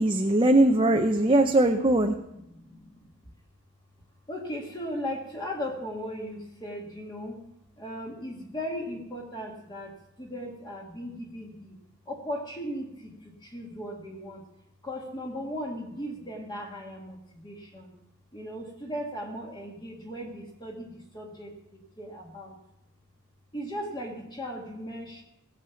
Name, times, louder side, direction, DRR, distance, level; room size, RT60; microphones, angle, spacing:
voice 1, 0.0-2.1, right 1 dB, 25° right, 4 dB, 0.7 m, -21 dB
voice 2, 2.5-3.1 4.3-7.4 7.8-11.8 12.1-14.4 14.8-17.9 18.3-22.6 23.5-25.2, equal, 20° left, 0 dB, 1.9 m, -37 dB
17.0 x 7.4 x 7.2 m, 0.83 s
head